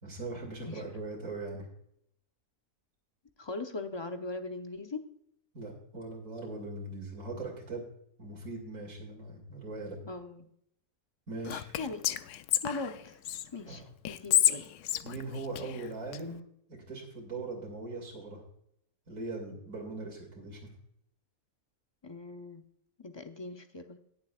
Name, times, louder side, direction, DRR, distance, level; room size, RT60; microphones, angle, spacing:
voice 1, 0.0-1.7 5.5-7.9 8.2-10.0 11.3-11.7 13.6-13.8 15.0-16.4 16.7-18.4 19.1-20.7, right 2 dB, 60° right, -2 dB, 3.0 m, -40 dB
voice 2, 3.4-5.0 10.0-10.5 11.8-12.1 12.6-13.2 13.5-14.7 22.0-22.6 23.0-24.0, left 3 dB, 30° left, 6 dB, 0.5 m, -40 dB
Whispering, 11.4-13.4 14.0-16.2, left 12 dB, 85° left, 1.1 m, -30 dB
19.0 x 7.2 x 2.4 m, 0.71 s
omnidirectional pair, 1.6 m